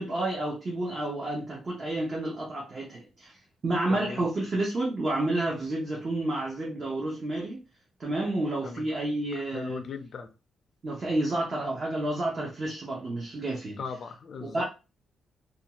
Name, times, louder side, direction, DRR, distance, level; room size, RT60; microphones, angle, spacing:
voice 1, 0.0-3.4 3.6-7.6 8.0-9.8 10.8-13.8 14.4-14.6, right 2 dB, 30° right, 0.5 m, -30 dB
voice 2, 3.9-4.3 8.6-8.9 9.5-10.3 13.8-14.6, left 5 dB, 40° left, 0.4 m, -38 dB
2.4 x 2.2 x 2.8 m
cardioid pair, 175°, 0 cm